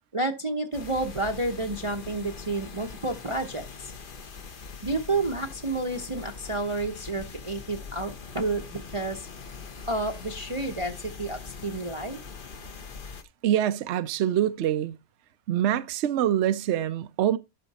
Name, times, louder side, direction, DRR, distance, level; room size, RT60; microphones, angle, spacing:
voice 1, 0.1-3.9 4.8-9.3 9.9-12.2, right 2 dB, 25° right, 0.8 m, -30 dB
sound 1, 0.7-13.2, left 5 dB, 40° left, 1.0 m, -42 dB
voice 2, 13.4-15.0 15.5-17.4, right 11 dB, 65° right, 0.8 m, -25 dB
12.0 x 4.5 x 4.1 m
omnidirectional pair, 1.5 m